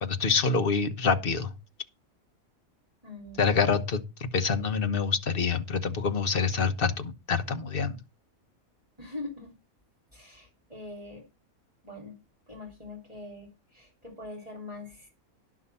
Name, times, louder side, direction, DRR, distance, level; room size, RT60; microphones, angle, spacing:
voice 1, 0.0-1.5 3.4-8.0, left 5 dB, 45° left, 1.2 m, -26 dB
voice 2, 3.0-3.6 9.0-9.5 10.1-11.2 11.8-12.1 12.5-15.1, left 2 dB, 25° right, 3.2 m, -42 dB
11.5 x 6.1 x 5.6 m
omnidirectional pair, 1.5 m